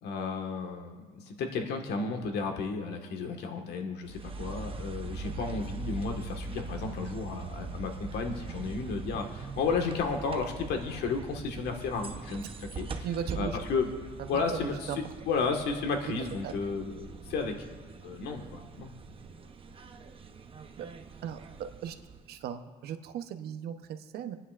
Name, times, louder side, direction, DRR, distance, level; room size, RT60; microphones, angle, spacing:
voice 1, 0.0-13.1 13.3-13.9 14.3-17.5 18.0-18.9, left 4 dB, 75° left, 3 dB, 1.6 m, -33 dB
sound 1, 4.0-22.5, right 4 dB, 30° right, 0.8 m, -42 dB
voice 2, 13.0-13.6 14.2-15.0 16.4-16.6 20.8-20.9 21.2-21.4 21.8-21.9 22.3-24.4, right 9 dB, 70° right, 8 dB, 0.9 m, -37 dB
29.0 x 9.9 x 2.5 m, 1.4 s
cardioid pair, 110°, 17 cm